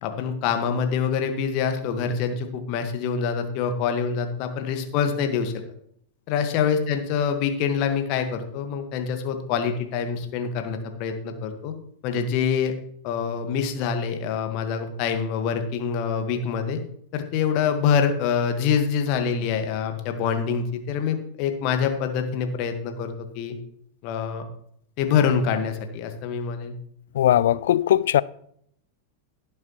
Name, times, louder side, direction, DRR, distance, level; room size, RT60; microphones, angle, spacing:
voice 1, 0.0-5.5 6.3-11.7 12.0-12.7 13.0-16.8 17.1-23.6 24.0-24.4 25.0-26.7, left 7 dB, 45° left, 1.6 m, -25 dB
voice 2, 27.2-28.2, left 12 dB, 60° left, 0.3 m, -19 dB
17.5 x 7.4 x 3.1 m
figure-of-eight pair, 90°, 0 cm